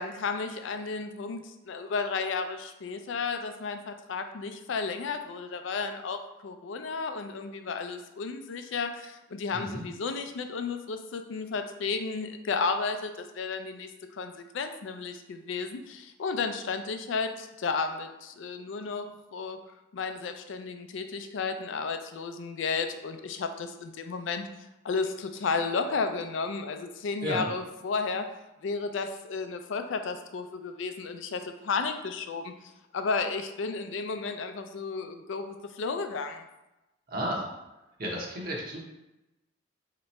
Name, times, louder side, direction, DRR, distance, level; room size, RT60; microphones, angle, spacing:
voice 1, 0.0-19.6 19.9-24.4 24.8-28.3 28.6-32.5 32.9-36.4, left 4 dB, 70° left, 7 dB, 0.4 m, -33 dB
voice 2, 9.5-9.8 27.2-27.5 37.1-37.5 38.0-38.8, equal, 50° right, -2 dB, 0.8 m, -33 dB
3.3 x 2.9 x 4.1 m, 0.98 s
head